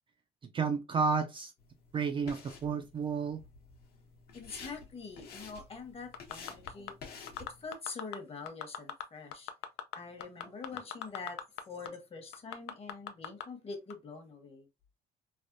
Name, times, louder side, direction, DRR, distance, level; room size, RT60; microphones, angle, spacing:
voice 1, 0.5-1.5 1.9-3.4, right 5 dB, 30° right, 0.4 m, -31 dB
sound 1, 1.6-7.7, left 5 dB, 65° left, 1.0 m, -51 dB
voice 2, 4.3-7.0 7.4-9.5 9.9-11.4 11.7-14.7, left 4 dB, 35° left, 1.0 m, -45 dB
sound 2, 6.1-6.9 7.3-8.2 8.5-9.0 9.3-11.6 11.9-12.0 12.3-13.4 13.9-14.0, left 11 dB, 85° left, 0.4 m, -39 dB
3.4 x 2.1 x 2.5 m
cardioid pair, 110°, 17 cm